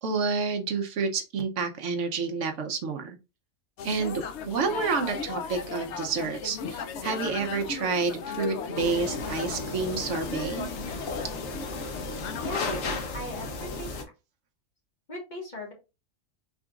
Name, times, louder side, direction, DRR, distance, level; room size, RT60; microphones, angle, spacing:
voice 1, 0.0-3.2 3.8-10.7, right 4 dB, 70° right, 5 dB, 1.0 m, -29 dB
sound 1, 3.8-12.7, left 6 dB, 70° left, 0.8 m, -37 dB
sound 2, 8.8-14.0, left 3 dB, 90° left, 1.2 m, -34 dB
voice 2, 12.4-12.7 13.1-14.0 15.1-15.7, left 1 dB, 35° left, -2 dB, 1.6 m, -38 dB
4.9 x 3.6 x 2.3 m, 0.28 s
omnidirectional pair, 1.3 m